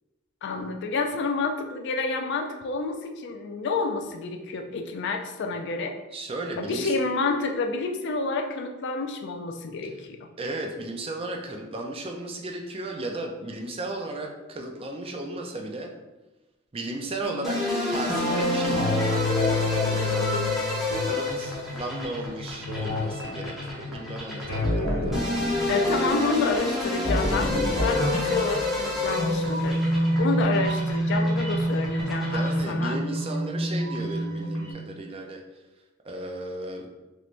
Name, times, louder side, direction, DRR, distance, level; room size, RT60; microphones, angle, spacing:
voice 1, 0.4-5.9 6.6-10.3 25.7-29.8 30.2-33.0, left 3 dB, 60° left, 5 dB, 0.3 m, -29 dB
voice 2, 6.1-6.9 10.4-15.9 16.7-17.6 17.9-18.9 19.2-20.5 21.0-25.2 32.2-35.4 36.0-36.9, right 2 dB, 30° right, 1 dB, 0.4 m, -34 dB
sound 1, 17.2-22.0 22.7-26.4 27.0-34.7, equal, 75° left, 1.2 m, -28 dB
sound 2, 17.4-32.8, left 2 dB, ahead, 0.7 m, -30 dB
3.1 x 3.0 x 2.5 m, 1.1 s
head